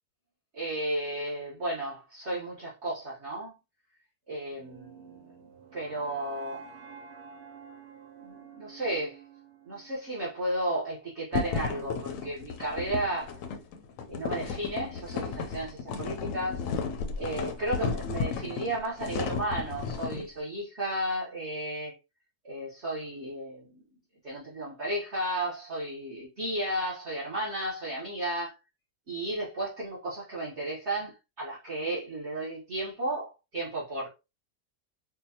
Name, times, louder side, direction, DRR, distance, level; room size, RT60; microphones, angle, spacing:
voice 1, 0.5-3.6 4.3-6.7 8.2-9.2 9.7-13.4 14.1-16.7 17.2-22.0 22.4-23.8 24.2-28.5 29.1-34.1, right 1 dB, 50° right, 1.3 m, -33 dB
sound 1, 4.5-10.6, right 6 dB, 65° right, 0.5 m, -49 dB
sound 2, 11.3-20.3, left 5 dB, 70° left, 0.8 m, -34 dB
4.4 x 2.2 x 2.7 m
omnidirectional pair, 1.7 m